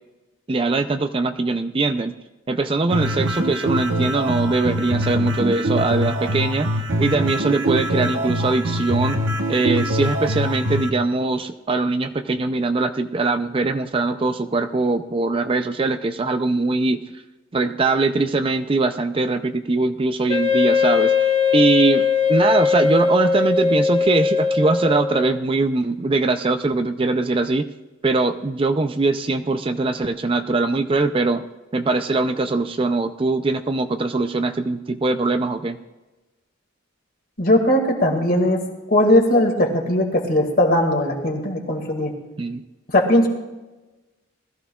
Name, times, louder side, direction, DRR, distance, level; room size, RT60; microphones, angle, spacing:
voice 1, 0.5-2.1 2.5-6.7 7.0-9.2 9.5-17.0 17.5-27.7 28.0-31.5 31.7-35.8 42.4-42.6, right 3 dB, 25° right, 9 dB, 0.4 m, -21 dB
sound 1, 2.9-10.9, equal, 70° right, 1.0 m, -24 dB
Wind instrument woodwind instrument, 20.3-25.4, left 5 dB, 30° left, 1.2 m, -19 dB
voice 2, 37.4-38.6 38.9-42.1 42.9-43.3, left 1 dB, 45° left, 2 dB, 2.0 m, -18 dB
20.0 x 14.0 x 2.3 m, 1.1 s
head